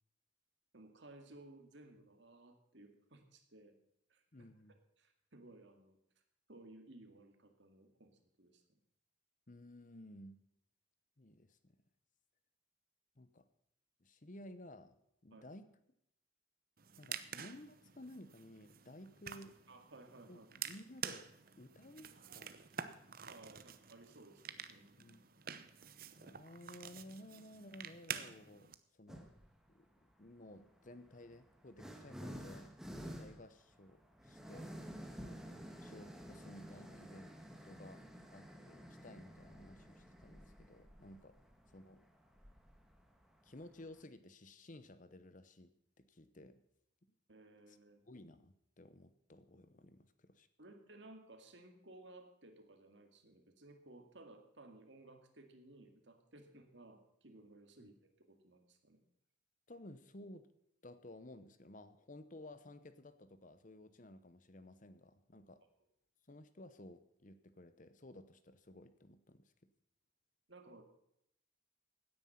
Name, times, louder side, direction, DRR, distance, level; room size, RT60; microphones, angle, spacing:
voice 1, 0.7-3.8 4.1-4.5 5.0-6.0 6.5-8.8 15.3-15.5 19.7-20.5 23.3-25.0 34.5-34.7 35.2-35.4 47.3-48.0 50.6-59.0 70.5-70.8, right 2 dB, 60° right, 5 dB, 2.2 m, -58 dB
voice 2, 4.3-4.8 9.5-10.4 11.2-11.8 13.2-13.5 14.0-15.0 15.2-15.7 17.0-19.6 20.3-21.3 21.6-22.5 25.0-25.2 26.2-29.3 29.7-32.7 33.2-34.7 35.8-37.3 37.6-38.0 38.3-41.4 41.7-42.0 43.4-46.6 47.7-47.8 48.0-50.5 57.8-57.9 59.7-60.5 60.8-65.6 66.3-69.5, left 1 dB, 40° left, 12 dB, 0.9 m, -55 dB
sound 1, 16.8-28.7, right 8 dB, 45° right, 0.8 m, -48 dB
sound 2, 29.1-29.5 30.5-44.0, equal, ahead, 1.4 m, -52 dB
17.0 x 9.7 x 5.8 m, 0.77 s
head